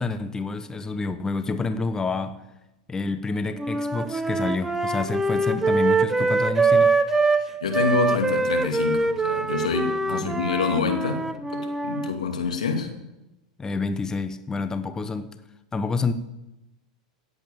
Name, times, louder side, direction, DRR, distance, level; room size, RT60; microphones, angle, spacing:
voice 1, 0.0-2.4 2.9-6.9 10.1-10.5 13.6-15.4 15.7-16.1, left 3 dB, 15° left, 10 dB, 1.0 m, -28 dB
sound 1, 3.6-7.4 7.7-12.1, right 3 dB, 10° right, 1.1 m, -23 dB
voice 2, 7.3-12.9, left 5 dB, 85° left, 4 dB, 2.4 m, -27 dB
17.5 x 8.3 x 7.1 m, 0.97 s
hypercardioid pair, 100°, 4 cm